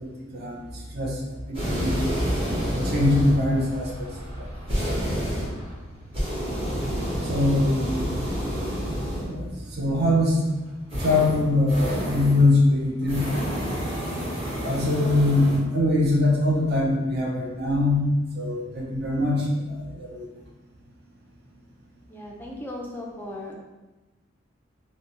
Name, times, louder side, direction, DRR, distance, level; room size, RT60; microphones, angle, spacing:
voice 1, 0.0-2.0 2.7-4.1 4.4-4.5 7.2-8.1 9.2-10.4 11.0-13.3 14.6-18.1 18.3-20.3, left 2 dB, 50° right, -2 dB, 0.5 m, -23 dB
sound 1, 1.5-9.5 10.9-12.5 13.0-15.6, equal, 25° right, 0.9 m, -29 dB
voice 2, 22.1-23.6, left 1 dB, 10° left, -1 dB, 0.3 m, -37 dB
2.6 x 2.1 x 2.8 m, 1.1 s
head